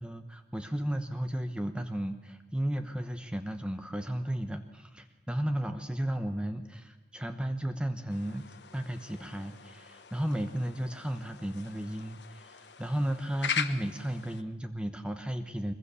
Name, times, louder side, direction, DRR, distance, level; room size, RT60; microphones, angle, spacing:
voice 1, 0.0-8.5 8.7-15.7, right 1 dB, 5° right, 7 dB, 1.0 m, -34 dB
sound 1, 8.1-14.4, left 7 dB, 75° left, 1.2 m, -40 dB
23.0 x 22.0 x 7.0 m, 1.1 s
head